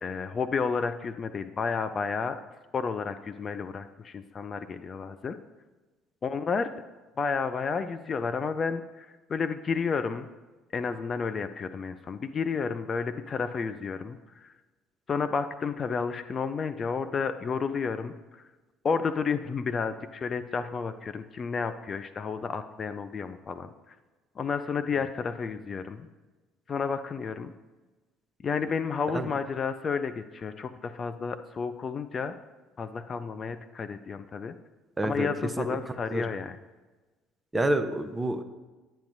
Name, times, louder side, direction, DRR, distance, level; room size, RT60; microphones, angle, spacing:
voice 1, 0.0-2.4 2.7-5.4 6.2-6.7 7.2-10.3 10.7-14.5 15.1-18.4 18.8-24.0 24.4-26.1 26.7-27.5 28.4-32.4 32.8-34.5 35.0-36.6, left 5 dB, 40° left, 11 dB, 0.4 m, -31 dB
voice 2, 35.0-35.3 35.6-35.7 36.1-36.2 37.5-38.4, right 1 dB, 15° right, 9 dB, 0.7 m, -27 dB
10.0 x 8.2 x 2.6 m, 1.2 s
figure-of-eight pair, 55°, 0 cm